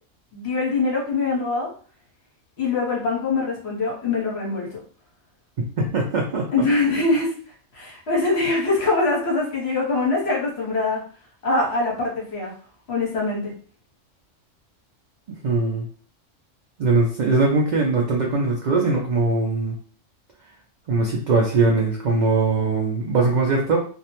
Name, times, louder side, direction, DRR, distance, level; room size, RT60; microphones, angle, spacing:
voice 1, 0.3-1.7 2.6-4.8 6.5-7.3 7.7-11.0 11.4-12.5 12.9-13.5, left 3 dB, 60° left, -3 dB, 1.1 m, -23 dB
voice 2, 5.8-6.5 15.4-15.9 16.8-19.7 20.9-23.8, right 3 dB, 75° right, -1 dB, 0.4 m, -21 dB
2.4 x 2.0 x 2.8 m, 0.43 s
omnidirectional pair, 1.3 m